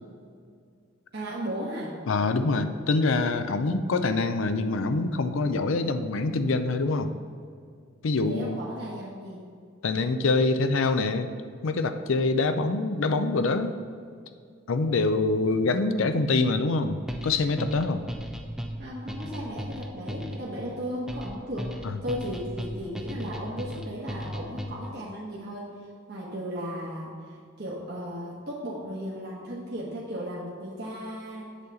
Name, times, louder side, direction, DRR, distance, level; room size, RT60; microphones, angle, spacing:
voice 1, 1.1-1.9 8.2-9.4 18.8-21.7 22.0-25.6 26.1-27.1 27.6-31.5, equal, 50° right, -5 dB, 1.2 m, -35 dB
voice 2, 2.1-7.1 8.0-8.6 9.8-11.3 11.6-13.8 14.7-18.0 21.8-22.0, left 3 dB, 75° left, 10 dB, 0.5 m, -25 dB
sound 1, 17.1-25.0, equal, ahead, 0.4 m, -36 dB
8.1 x 4.0 x 6.9 m, 2.2 s
head